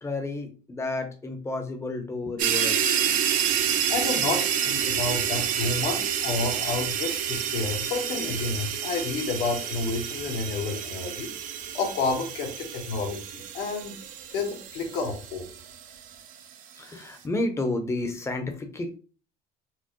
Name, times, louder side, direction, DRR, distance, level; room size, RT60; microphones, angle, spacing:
voice 1, 0.0-2.9 16.8-19.0, left 2 dB, 15° left, 6 dB, 0.7 m, -31 dB
sound 1, 2.4-16.0, right 9 dB, 50° right, 0.5 m, -29 dB
voice 2, 3.9-11.3 11.7-14.0 14.3-15.4, left 4 dB, 75° left, 1 dB, 1.2 m, -30 dB
4.4 x 2.1 x 2.9 m, 0.37 s
cardioid pair, 130°, 17 cm